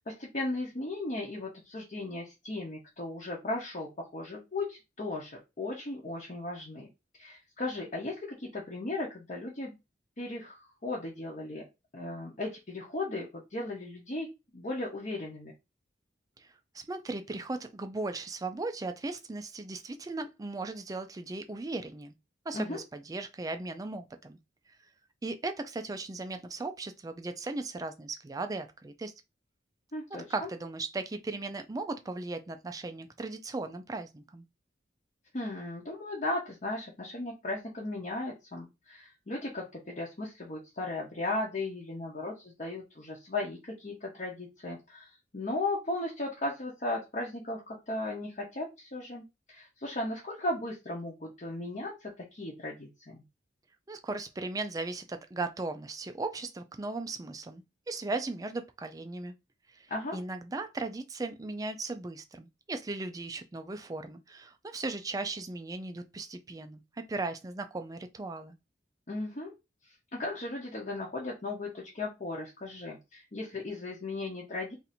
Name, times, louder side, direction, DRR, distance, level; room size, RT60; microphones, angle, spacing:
voice 1, 0.0-6.9 7.2-9.8 10.2-11.6 11.9-14.3 14.5-15.5 22.5-22.8 29.9-30.5 35.3-53.2 59.9-60.2 69.1-69.5 70.1-74.8, left 2 dB, 45° left, 0.9 m, -36 dB
voice 2, 16.7-22.1 22.5-24.4 25.2-29.1 30.3-34.4 53.9-59.3 59.7-66.8 67.1-68.6, right 3 dB, 20° right, 0.4 m, -37 dB
2.7 x 2.5 x 4.2 m
head